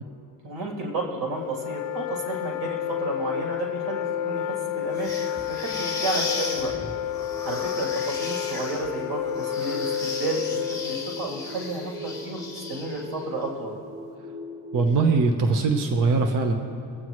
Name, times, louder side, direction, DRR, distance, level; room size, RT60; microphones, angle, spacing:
voice 1, 0.4-5.1 5.5-6.7 7.4-10.4 10.7-13.7, right 2 dB, 85° right, -2 dB, 3.1 m, -32 dB
Wind instrument woodwind instrument, 1.4-11.3, left 11 dB, 45° left, 0.7 m, -30 dB
sound 1, 2.8-15.1, equal, 25° right, 2.5 m, -40 dB
sound 2, 4.9-13.2, left 3 dB, 5° left, 2.2 m, -36 dB
voice 2, 14.7-16.5, right 4 dB, 45° right, 4 dB, 1.0 m, -21 dB
26.0 x 8.9 x 3.2 m, 2.7 s
cardioid pair, 115°, 45 cm